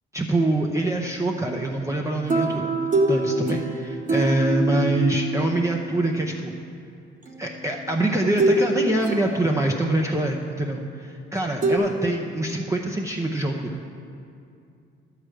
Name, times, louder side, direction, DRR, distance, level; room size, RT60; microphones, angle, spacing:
voice 1, 0.1-6.5 7.4-13.8, right 1 dB, 15° right, 1 dB, 0.6 m, -25 dB
sound 1, 2.3-5.9 7.3-7.4 8.4-8.7 9.0-9.9 11.6-11.8, right 2 dB, 40° right, 1.5 m, -24 dB
11.0 x 4.9 x 7.8 m, 2.5 s
cardioid pair, 90°, 20 cm